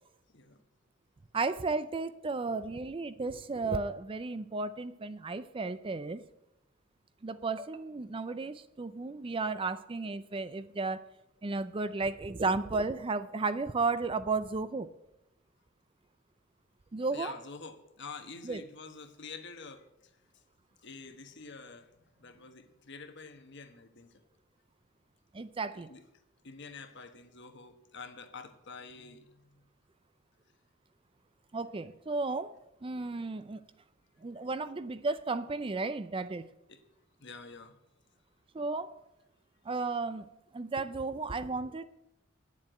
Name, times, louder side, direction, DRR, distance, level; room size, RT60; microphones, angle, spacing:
voice 1, 0.3-0.6 17.1-20.4 20.8-24.1 25.7-26.0 26.4-29.7 36.7-36.8 37.2-37.7, left 4 dB, 55° left, 7 dB, 1.2 m, -48 dB
voice 2, 1.3-6.2 7.2-11.1 11.4-14.9 16.9-17.3 18.4-18.6 25.3-25.9 31.5-32.5 32.8-33.6 34.2-36.4 38.5-38.9 39.7-40.3 40.5-41.8, right 3 dB, 25° right, 13 dB, 0.4 m, -33 dB
9.7 x 7.4 x 8.8 m, 0.88 s
head